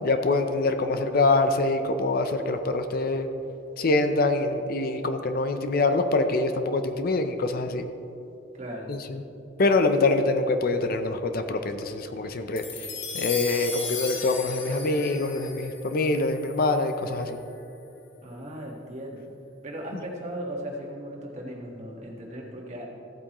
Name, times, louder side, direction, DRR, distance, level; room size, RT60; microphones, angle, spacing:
voice 1, 0.0-3.3 3.8-7.9 8.9-9.2 9.6-12.6 13.1-17.4, left 2 dB, 50° left, 8 dB, 0.5 m, -25 dB
voice 2, 8.6-8.9 18.2-19.3 19.6-22.9, right 1 dB, 40° right, -2 dB, 1.6 m, -37 dB
sound 1, 12.6-17.1, left 5 dB, 70° left, 1.4 m, -36 dB
14.5 x 8.4 x 3.0 m, 2.9 s
head